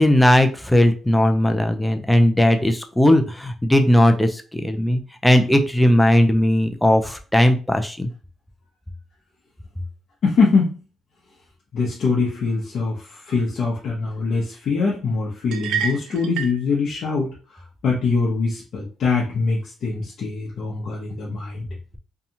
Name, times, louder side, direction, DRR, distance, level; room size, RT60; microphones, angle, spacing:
voice 1, 0.0-8.1, left 1 dB, 5° left, 7 dB, 0.4 m, -17 dB
voice 2, 10.2-10.8 11.7-21.7, left 4 dB, 65° left, -4 dB, 0.7 m, -23 dB
sound 1, 15.5-16.6, right 8 dB, 85° right, 0.3 m, -27 dB
2.7 x 2.3 x 2.7 m, 0.36 s
cardioid pair, 90°, 0 cm